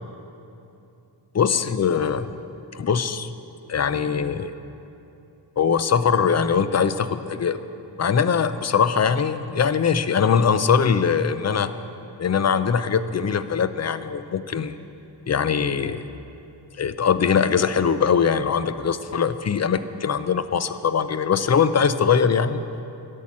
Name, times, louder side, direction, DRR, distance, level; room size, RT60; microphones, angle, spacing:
voice 1, 1.3-2.3 2.7-3.3 3.7-4.5 5.6-7.6 8.0-11.7 12.2-14.8 15.3-16.0 16.8-22.6, left 6 dB, 35° left, 12 dB, 0.5 m, -21 dB
11.0 x 8.3 x 7.3 m, 2.8 s
wide cardioid pair, 105°, 45 cm